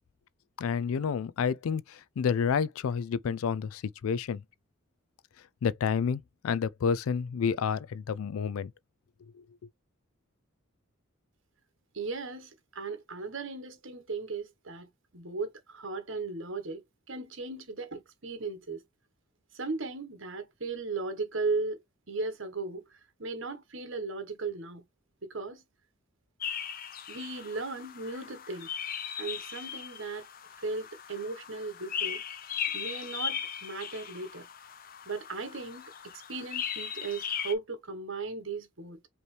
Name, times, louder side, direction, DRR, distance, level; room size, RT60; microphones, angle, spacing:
voice 1, 0.6-4.4 5.6-8.7, left 6 dB, 85° left, 0.4 m, -29 dB
voice 2, 11.9-16.8 17.1-18.8 19.5-24.8 25.2-25.6 27.1-28.7 29.2-30.3 30.6-32.2 32.7-34.5 35.0-39.0, right 3 dB, 65° right, 1.4 m, -37 dB
sound 1, 26.4-37.5, left 8 dB, 45° left, 0.6 m, -38 dB
5.2 x 3.1 x 3.2 m
head